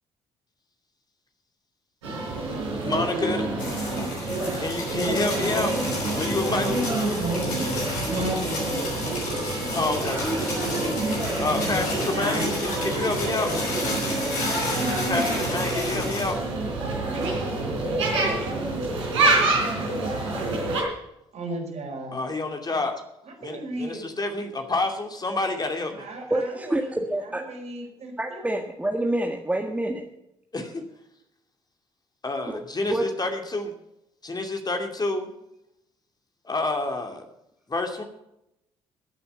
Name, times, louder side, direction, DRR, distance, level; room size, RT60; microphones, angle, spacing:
sound 1, 2.0-20.8, right 2 dB, 80° right, 4.0 m, -27 dB
voice 1, 2.8-3.5 4.6-5.7 6.1-6.9 9.7-10.2 11.4-13.5 15.1-16.4 22.1-23.0 23.4-26.0 30.5-30.8 32.2-33.7 34.2-35.3 36.4-37.2 37.7-38.0, left 2 dB, 25° left, 4 dB, 2.6 m, -28 dB
sound 2, 3.6-16.3, left 2 dB, 70° left, 5.7 m, -33 dB
voice 2, 7.1-7.6 8.1-9.3 9.7-10.2 11.4-12.6 13.2-13.6 21.3-22.3 23.2-24.4 26.0-27.0 27.2-28.4, right 1 dB, 50° right, 1 dB, 5.1 m, -35 dB
voice 3, 26.3-27.4 28.2-30.0 32.5-32.6 32.9-33.1, right 1 dB, 10° right, 1 dB, 1.8 m, -27 dB
15.5 x 8.5 x 6.8 m, 0.83 s
figure-of-eight pair, 45°, 15 cm